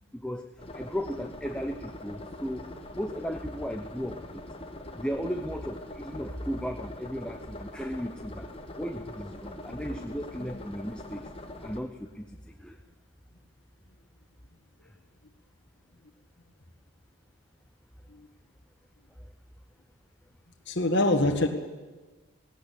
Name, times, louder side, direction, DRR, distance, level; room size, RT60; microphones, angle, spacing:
voice 1, 0.1-4.4 4.9-8.5 8.8-11.2 11.6-12.8, equal, 5° left, 6 dB, 0.7 m, -36 dB
sound 1, 0.6-11.8, left 1 dB, 25° left, 1.5 m, -43 dB
voice 2, 9.7-10.0 10.4-10.5 18.2-18.3 20.7-21.5, left 2 dB, 50° left, 4 dB, 1.8 m, -26 dB
17.5 x 17.5 x 8.6 m, 1.3 s
head